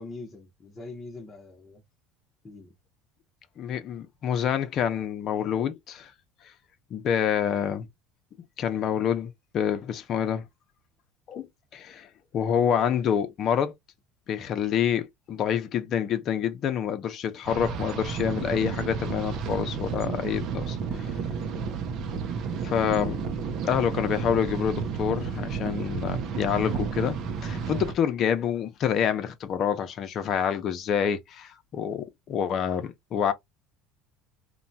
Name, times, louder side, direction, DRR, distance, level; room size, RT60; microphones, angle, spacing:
voice 1, 0.0-1.8 2.4-2.7 21.4-21.6 27.7-27.8, left 3 dB, 20° left, 0.9 m, -43 dB
voice 2, 3.6-6.1 6.9-7.9 8.6-10.4 11.3-11.5 11.7-12.1 12.3-13.7 14.3-20.8 22.6-23.2 23.6-27.2 27.4-33.3, left 8 dB, 45° left, 0.7 m, -27 dB
sound 1, 17.5-27.9, right 6 dB, 50° right, 0.6 m, -32 dB
3.0 x 2.2 x 2.6 m
supercardioid pair, 120°, 0 cm